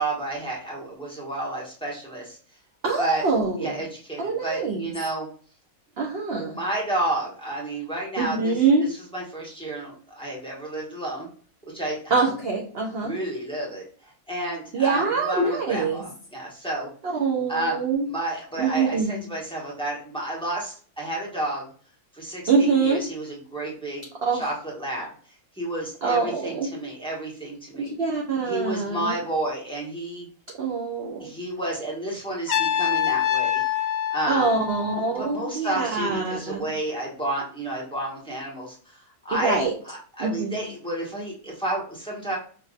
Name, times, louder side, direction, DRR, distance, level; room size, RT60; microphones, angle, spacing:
voice 1, 0.0-2.4 3.0-3.2 3.6-5.3 6.5-8.6 9.1-11.3 11.7-12.3 13.0-16.9 17.5-17.8 18.1-21.7 22.1-24.0 24.4-25.1 25.6-27.9 28.4-30.3 31.2-33.6 34.1-34.5 35.1-42.4, right 1 dB, 5° left, -4 dB, 1.3 m, -31 dB
voice 2, 2.8-3.8 4.2-4.9 6.0-6.6 8.2-8.9 12.1-13.1 14.7-16.0 17.0-18.1 18.6-19.2 22.5-23.0 24.2-24.5 26.0-26.7 27.8-29.2 30.6-31.3 34.3-36.7 39.3-39.7 40.2-40.6, right 4 dB, 50° right, -1 dB, 0.8 m, -24 dB
Trumpet, 32.5-35.5, left 10 dB, 90° left, 0.3 m, -25 dB
5.8 x 2.9 x 2.4 m, 0.43 s
omnidirectional pair, 1.7 m